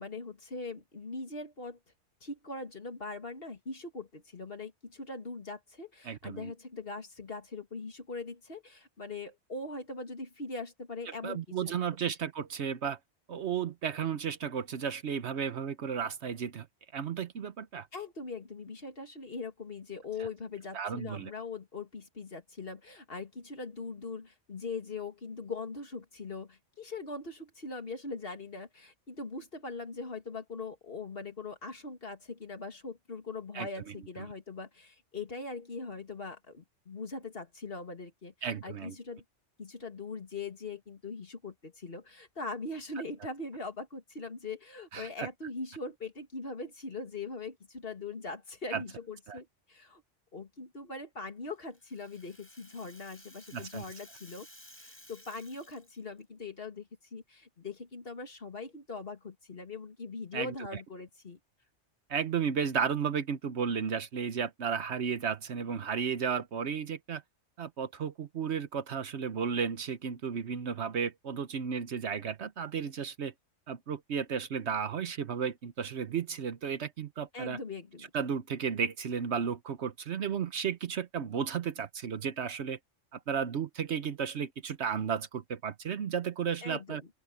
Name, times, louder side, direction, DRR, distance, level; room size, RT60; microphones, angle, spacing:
voice 1, 0.0-1.8 2.2-11.7 17.9-39.2 39.6-50.0 50.3-54.5 54.8-61.4 77.3-78.1 86.6-87.1, left 3 dB, 50° left, 2.5 m, -41 dB
voice 2, 6.0-6.5 11.2-13.0 13.3-16.7 16.9-17.9 20.2-20.3 20.7-21.3 33.5-33.7 38.4-38.9 44.9-45.3 48.7-48.8 49.3-49.4 53.5-53.8 60.3-60.5 62.1-67.2 67.6-73.3 73.7-77.6 78.1-82.8 83.1-87.0, right 7 dB, 65° right, 1.1 m, -33 dB
Rattle (instrument), 51.5-56.2, equal, 10° left, 7.7 m, -55 dB
open air
omnidirectional pair, 1.3 m